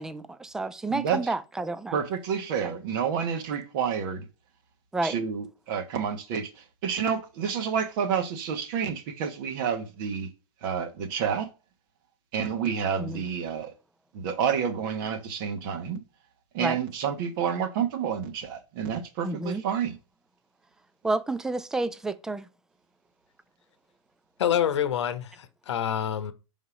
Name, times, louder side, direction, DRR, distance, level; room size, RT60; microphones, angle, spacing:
voice 1, 0.0-1.9 2.6-2.7 4.9-5.1 13.0-13.2 16.6-16.8 19.2-19.6 21.0-22.5, right 2 dB, 5° right, 0.3 m, -30 dB
voice 2, 0.9-1.2 1.9-4.3 5.0-10.3 10.6-11.5 12.3-13.7 14.1-16.0 16.5-20.0, right 7 dB, 40° right, 1.1 m, -29 dB
voice 3, 24.4-26.3, left 9 dB, 60° left, 0.9 m, -27 dB
5.4 x 3.7 x 4.9 m
figure-of-eight pair, 120°, 17 cm